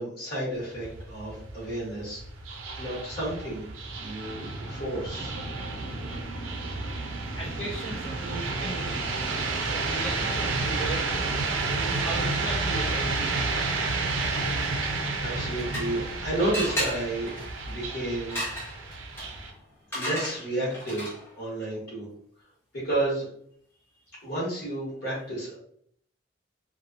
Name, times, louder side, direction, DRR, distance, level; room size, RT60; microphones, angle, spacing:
voice 1, 0.0-2.2 2.8-3.6 4.0-5.3 14.8-14.9 15.2-18.4 19.9-21.1 21.3-22.1 22.7-23.3 24.2-25.6, right 1 dB, 50° left, -6 dB, 1.2 m, -31 dB
sound 1, 0.5-19.5, right 3 dB, 90° right, 0.5 m, -31 dB
voice 2, 7.3-9.1 9.7-11.1 11.8-13.5, right 2 dB, 70° left, -7 dB, 0.7 m, -36 dB
sound 2, 15.3-16.2 16.5-21.4, equal, 10° left, 0.8 m, -35 dB
2.7 x 2.3 x 2.5 m, 0.65 s
head